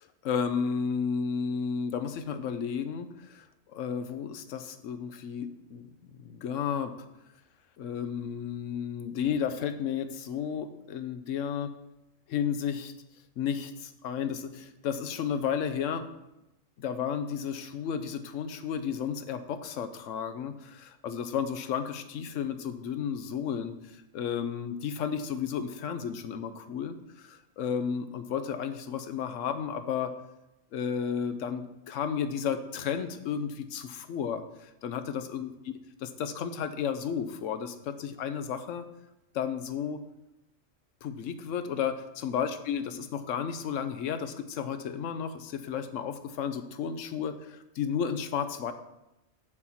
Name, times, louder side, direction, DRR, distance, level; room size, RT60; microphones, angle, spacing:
voice 1, 0.2-3.4 3.7-5.9 6.2-6.9 7.8-11.7 12.3-12.9 13.4-16.1 16.8-30.1 30.7-35.5 36.2-38.9 39.3-40.0 41.0-48.7, left 7 dB, 80° left, 10 dB, 1.0 m, -33 dB
7.2 x 6.7 x 4.2 m, 0.89 s
omnidirectional pair, 1.3 m